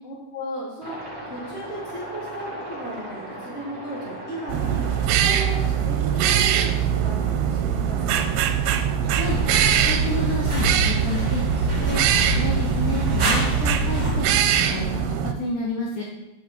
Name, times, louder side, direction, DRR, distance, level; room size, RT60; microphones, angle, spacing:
voice 1, 0.0-4.9 5.2-8.3, equal, 20° left, -6 dB, 2.1 m, -35 dB
Aircraft, 0.8-14.2, right 1 dB, 45° right, 1.3 m, -40 dB
sound 1, 4.5-15.3, right 9 dB, 80° right, 2.5 m, -22 dB
voice 2, 9.0-9.4 9.8-11.4 11.8-14.3 14.5-16.0, left 3 dB, 75° left, -3 dB, 1.8 m, -30 dB
sound 2, 9.1-14.1, right 1 dB, 20° right, 1.2 m, -26 dB
8.1 x 7.2 x 4.5 m, 0.99 s
omnidirectional pair, 5.1 m